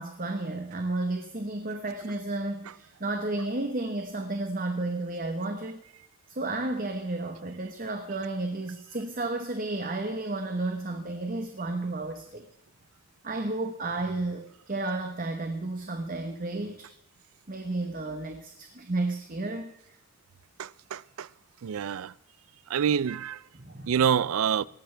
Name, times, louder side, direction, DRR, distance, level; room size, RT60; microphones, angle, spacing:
voice 1, 0.0-5.8 6.3-12.5 13.2-16.9 17.5-20.0 23.6-24.2, right 2 dB, 40° right, 1.1 m, -32 dB
voice 2, 20.6-21.3 21.6-22.1 22.7-23.4 23.9-24.6, right 8 dB, 75° right, 0.4 m, -26 dB
18.5 x 13.5 x 3.4 m
head